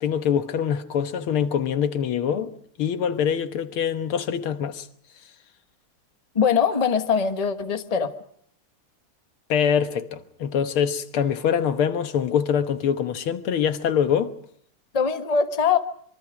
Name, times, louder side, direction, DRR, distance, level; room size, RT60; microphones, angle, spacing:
voice 1, 0.0-2.5 2.8-4.9 9.5-14.3, left 8 dB, 90° left, 2.1 m, -24 dB
voice 2, 6.3-8.1 14.9-15.8, left 6 dB, 25° left, 1.0 m, -22 dB
25.5 x 23.5 x 5.0 m
omnidirectional pair, 2.3 m